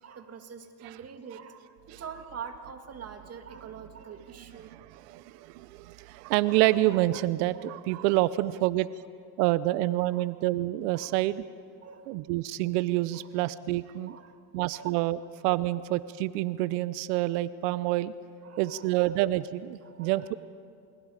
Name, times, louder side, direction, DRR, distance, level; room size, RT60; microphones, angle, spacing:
voice 1, 0.0-4.7 7.5-7.7 8.0-8.2 10.1-10.3 10.9-11.2 11.8-12.2 13.1-13.4 14.1-14.4 14.7-14.9 15.7-15.8 18.4-19.2 19.8-20.4, right 6 dB, 30° right, 6 dB, 2.1 m, -45 dB
voice 2, 4.7-8.9 9.4-11.4 12.1-14.2 14.5-15.2 15.4-18.1 18.6-20.3, right 16 dB, 75° right, 16 dB, 0.8 m, -27 dB
29.0 x 28.5 x 5.0 m, 2.3 s
supercardioid pair, 115°, 47 cm